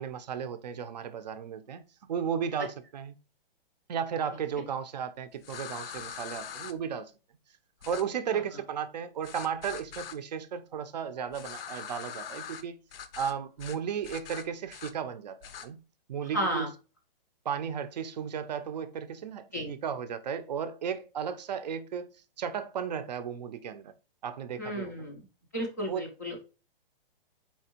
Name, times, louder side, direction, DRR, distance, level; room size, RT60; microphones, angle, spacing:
voice 1, 0.0-1.8 2.1-3.1 3.9-7.1 7.9-12.8 13.2-15.8 16.1-16.7 17.5-22.1 22.4-23.9 24.2-24.9 25.9-26.0, right 7 dB, 45° right, 0.5 m, -34 dB
sound 1, 5.4-6.7 7.8-8.0 9.2-10.2 11.3-12.6 12.9-13.3 13.6-13.8 14.0-14.9 15.4-15.7, left 8 dB, 75° left, 0.6 m, -42 dB
voice 2, 16.3-16.7 19.5-19.7 24.6-25.2 25.5-26.4, equal, 20° left, 0.3 m, -33 dB
4.4 x 3.3 x 2.8 m
hypercardioid pair, 165°, 29 cm